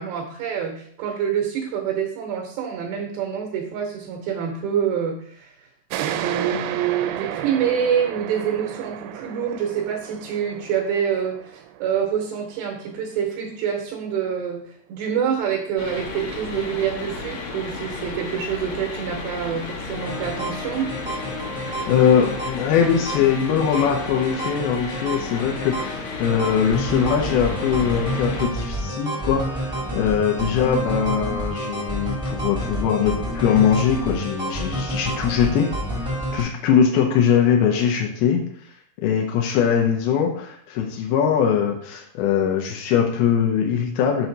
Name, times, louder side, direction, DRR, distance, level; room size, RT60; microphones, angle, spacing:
voice 1, 0.0-5.6 6.0-14.6 14.9-21.2 30.4-30.5, right 8 dB, 75° right, 1 dB, 2.9 m, -26 dB
sound 1, 5.9-13.1, right 11 dB, 90° right, 3.0 m, -33 dB
sound 2, 15.8-28.5, left 3 dB, 60° left, 2.3 m, -33 dB
sound 3, 19.9-36.4, right 1 dB, 15° right, 1.1 m, -30 dB
voice 2, 21.9-35.7 36.3-38.4 39.0-44.3, left 8 dB, 80° left, 0 dB, 2.3 m, -21 dB
7.0 x 6.1 x 3.9 m, 0.62 s
omnidirectional pair, 5.3 m